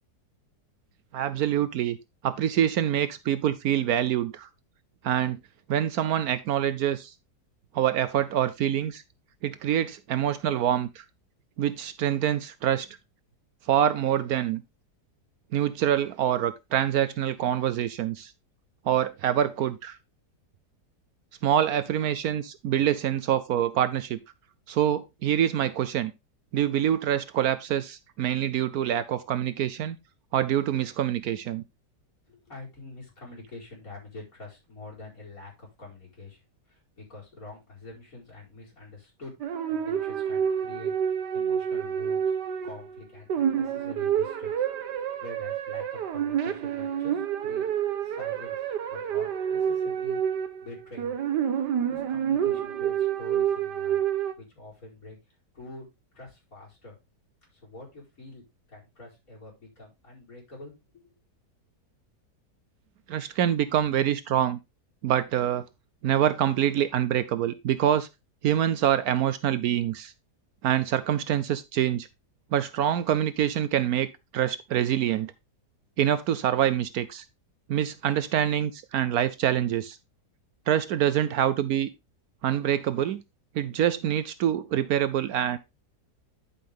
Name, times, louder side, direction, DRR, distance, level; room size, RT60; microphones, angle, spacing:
voice 1, 1.1-2.0 2.2-4.5 5.0-5.4 5.7-7.1 7.7-9.0 9.4-11.0 11.6-12.9 13.7-14.6 15.5-18.3 18.9-20.0 21.4-24.2 24.7-26.1 26.5-30.0 30.3-31.6 63.1-64.6 65.0-65.6 66.0-68.1 68.4-70.1 70.6-72.1 72.5-74.1 74.3-75.3 76.0-77.2 77.7-80.0 80.7-81.9 82.4-83.2 83.5-85.6, right 10 dB, 70° right, 1.0 m, -25 dB
voice 2, 32.3-39.3 39.7-42.4 42.6-44.7 44.9-47.7 48.0-50.2 50.6-51.2 51.6-54.0 54.4-55.2 55.5-55.9 56.1-57.0 57.5-61.1, left 2 dB, 55° left, 5.1 m, -46 dB
sound 1, 39.4-43.0 43.3-54.3, right 9 dB, 90° right, 1.6 m, -28 dB
10.5 x 5.6 x 3.4 m
omnidirectional pair, 1.8 m